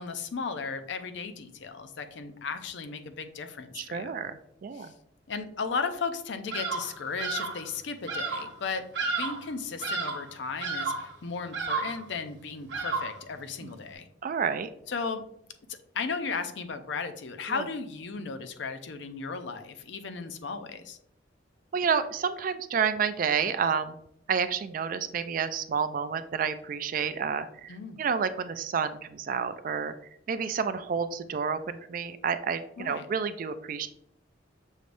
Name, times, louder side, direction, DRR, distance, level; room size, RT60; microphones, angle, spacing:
voice 1, 0.0-4.1 4.7-4.9 5.3-14.1 14.9-15.2 15.9-21.0 27.7-28.0 32.8-33.1, left 5 dB, 65° left, 8 dB, 0.5 m, -35 dB
voice 2, 3.7-4.9 13.6-13.7 14.2-14.7 21.7-24.0 24.3-29.9 30.3-33.9, right 6 dB, 45° right, 12 dB, 0.3 m, -30 dB
Bird vocalization bird call bird song, 6.5-6.9 7.2-7.6 8.1-8.5 8.9-9.5 9.8-10.3 10.6-11.1 11.5-12.0 12.7-13.2, right 4 dB, 60° right, 1.0 m, -32 dB
6.3 x 3.3 x 2.5 m, 0.74 s
head